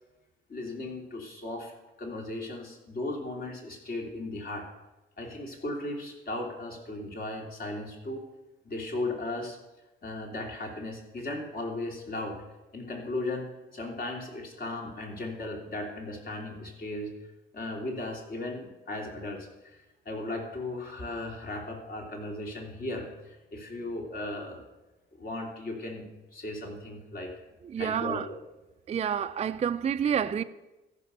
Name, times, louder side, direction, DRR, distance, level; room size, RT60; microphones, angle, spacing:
voice 1, 0.5-1.7 2.0-4.7 5.2-8.2 8.6-9.6 10.0-12.4 12.7-17.1 17.5-24.7 25.2-26.0 26.3-27.3 27.8-28.4, left 2 dB, 50° left, 2.9 m, -36 dB
voice 2, 27.6-28.3 28.9-30.4, right 8 dB, 35° right, 0.4 m, -29 dB
14.0 x 6.1 x 6.8 m
cardioid pair, 90°, 20 cm